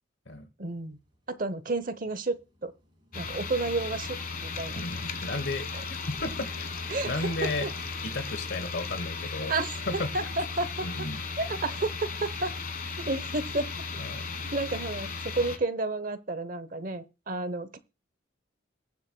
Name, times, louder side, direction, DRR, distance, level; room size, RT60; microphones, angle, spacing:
sound 1, 0.6-15.1, equal, 25° right, 4.1 m, -58 dB
voice 1, 0.6-1.0 1.3-2.7 3.1-4.8 5.7-5.8 6.9-7.7 9.5-10.9 11.4-12.5 13.1-13.7 14.4-17.8, right 2 dB, 45° right, 0.8 m, -31 dB
sound 2, 3.1-15.6, left 4 dB, 45° left, 1.3 m, -36 dB
voice 2, 4.8-6.7 7.1-7.7 8.0-9.6 9.9-10.1 10.8-11.2 14.0-14.3, left 2 dB, 60° left, 1.1 m, -34 dB
22.0 x 7.6 x 2.2 m
head